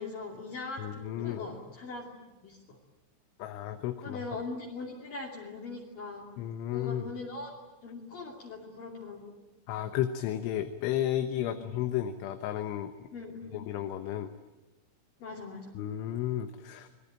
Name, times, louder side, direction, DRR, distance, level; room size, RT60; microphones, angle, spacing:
voice 1, 0.0-2.1 2.4-2.8 4.0-6.3 6.7-7.5 7.8-9.3 11.4-11.7 13.1-13.7 15.2-15.7, left 3 dB, 50° left, -2 dB, 4.0 m, -41 dB
voice 2, 0.8-1.4 3.4-4.2 6.4-7.1 9.7-13.1 13.5-14.3 15.8-16.9, left 11 dB, 80° left, 7 dB, 3.5 m, -33 dB
28.5 x 21.5 x 8.9 m, 1.1 s
omnidirectional pair, 5.6 m